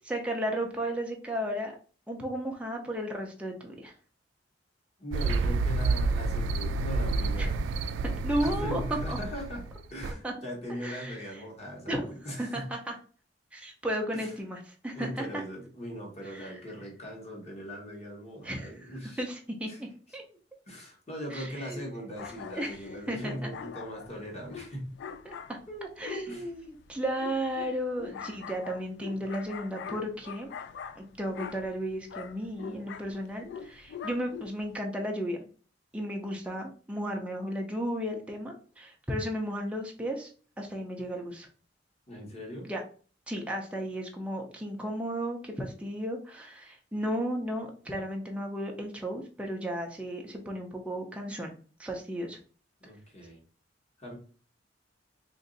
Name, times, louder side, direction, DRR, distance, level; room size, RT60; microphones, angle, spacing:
voice 1, 0.0-1.7 2.1-3.9 7.4-7.5 8.2-9.2 10.2-10.3 10.8-11.4 11.8-12.1 12.4-13.0 13.5-15.4 16.2-16.6 18.4-20.2 21.3-21.8 22.5-23.5 25.2-25.6 26.0-30.5 31.0-35.4 35.9-40.3 40.6-41.5 42.6-42.8 43.3-51.5 51.8-52.4, equal, 5° right, 1 dB, 0.5 m, -34 dB
voice 2, 5.0-7.6 8.4-9.6 9.9-12.6 14.1-14.3 14.9-19.2 19.7-19.8 20.7-24.9 25.7-25.9 26.3-26.5 42.1-42.7 52.8-53.4 54.0-54.1, equal, 35° left, -1 dB, 1.2 m, -40 dB
sound 1, 5.1-10.1, right 3 dB, 85° right, 0.3 m, -29 dB
sound 2, 22.2-34.8, left 7 dB, 65° left, 0.3 m, -44 dB
2.9 x 2.6 x 3.8 m, 0.40 s
head